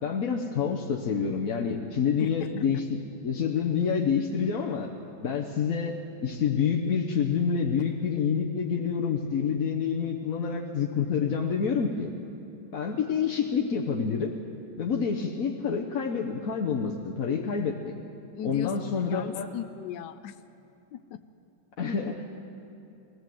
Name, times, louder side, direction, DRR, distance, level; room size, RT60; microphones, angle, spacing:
voice 1, 0.0-4.9 5.2-12.1 12.7-14.3 14.8-17.9 18.4-19.5 21.8-22.2, left 6 dB, 50° left, 0 dB, 1.2 m, -28 dB
voice 2, 18.4-20.4 20.9-21.2, left 10 dB, 70° left, 9 dB, 1.1 m, -37 dB
20.5 x 17.5 x 7.8 m, 2.8 s
omnidirectional pair, 2.2 m